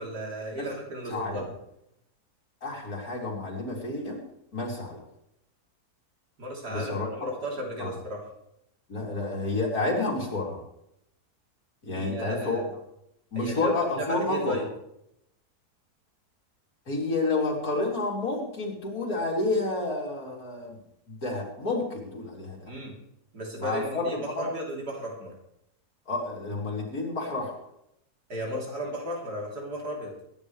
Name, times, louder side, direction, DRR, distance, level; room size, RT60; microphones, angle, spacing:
voice 1, 0.0-1.5 6.4-8.2 11.9-12.7 13.3-14.7 22.7-22.9 23.3-25.3 28.3-30.1, right 1 dB, 80° right, -2 dB, 4.2 m, -35 dB
voice 2, 1.1-1.5 2.6-4.2 4.5-5.0 6.7-7.1 7.8-7.9 8.9-10.6 11.8-12.6 13.3-14.6 16.9-20.8 21.1-22.7 23.6-24.1 24.4-24.5 26.1-27.5, left 3 dB, 65° left, -1 dB, 3.8 m, -30 dB
22.5 x 10.5 x 3.4 m, 0.79 s
omnidirectional pair, 1.7 m